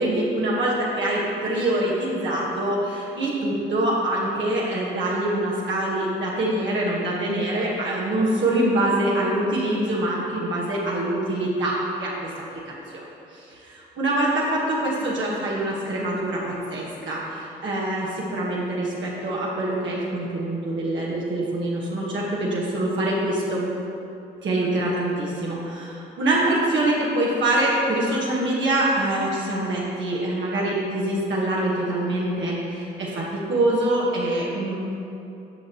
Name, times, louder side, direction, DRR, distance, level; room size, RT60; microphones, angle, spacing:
voice 1, 0.0-12.1 12.5-13.0 14.0-23.7 24.4-34.8, right 1 dB, 65° right, -5 dB, 1.3 m, -24 dB
9.9 x 5.8 x 2.9 m, 2.7 s
supercardioid pair, 60°, 21 cm